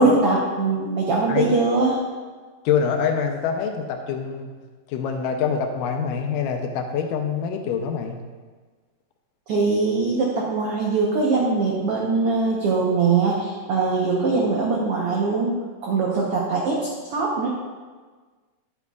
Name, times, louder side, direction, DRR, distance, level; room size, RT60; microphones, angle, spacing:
voice 1, 0.0-2.0 9.5-15.6 15.8-17.5, right 3 dB, 90° right, -3 dB, 1.2 m, -22 dB
voice 2, 2.7-4.5 4.9-8.2, left 6 dB, 80° left, 4 dB, 2.2 m, -25 dB
10.5 x 8.2 x 2.4 m, 1.4 s
omnidirectional pair, 3.9 m